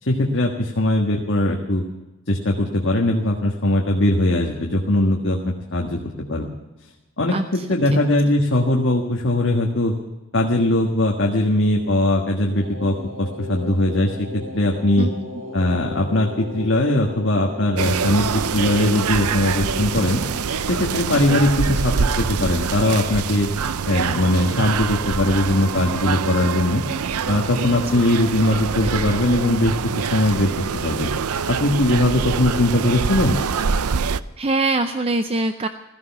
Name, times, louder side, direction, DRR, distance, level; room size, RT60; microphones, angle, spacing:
voice 1, 0.0-1.8 2.3-6.0 6.3-6.5 7.2-7.3 7.7-9.9 10.3-15.1 15.5-20.2 20.6-23.5 23.9-26.8 27.3-29.8 30.1-30.5 30.8-31.1 31.5-33.4, left 1 dB, 55° left, 0 dB, 1.6 m, -20 dB
voice 2, 7.3-7.7 15.0-15.1 21.3-21.4 28.5-28.9 34.4-35.7, right 2 dB, 25° right, 9 dB, 0.5 m, -24 dB
sound 1, 12.6-29.6, equal, 65° right, 3.1 m, -38 dB
sound 2, 17.8-34.2, right 6 dB, 85° right, 0.6 m, -25 dB
16.0 x 13.5 x 5.9 m, 1.1 s
head